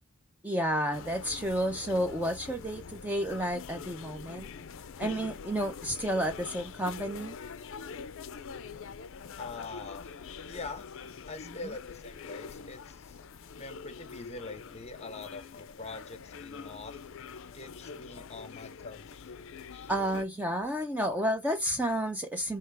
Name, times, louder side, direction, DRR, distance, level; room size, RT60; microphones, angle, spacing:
voice 1, 0.4-4.5 5.0-7.4 19.9-22.6, equal, 5° right, 0.4 m, -31 dB
sound 1, 0.9-20.2, left 5 dB, 60° left, 0.4 m, -44 dB
voice 2, 9.4-10.1 10.5-10.9 11.3-13.2 13.6-17.0 17.5-19.1 19.7-19.9, left 3 dB, 30° left, 0.7 m, -44 dB
4.4 x 2.8 x 3.4 m
head